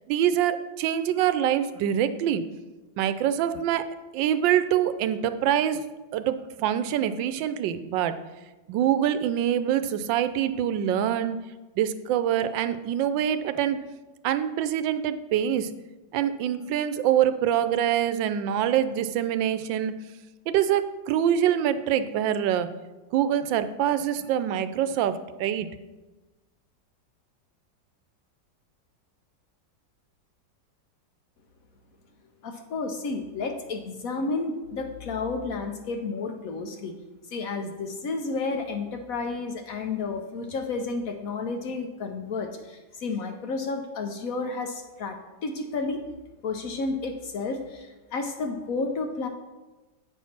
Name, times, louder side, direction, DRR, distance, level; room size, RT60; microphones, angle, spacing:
voice 1, 0.1-2.4 3.0-3.9 4.1-5.8 6.1-8.2 8.7-11.4 11.8-13.8 14.2-15.7 16.1-19.9 20.5-22.7 23.1-25.7, right 10 dB, 90° right, 12 dB, 1.3 m, -25 dB
voice 2, 32.4-36.9 37.3-46.0 46.4-49.3, left 3 dB, 65° left, 5 dB, 0.9 m, -31 dB
8.6 x 4.5 x 5.8 m, 1.1 s
omnidirectional pair, 2.0 m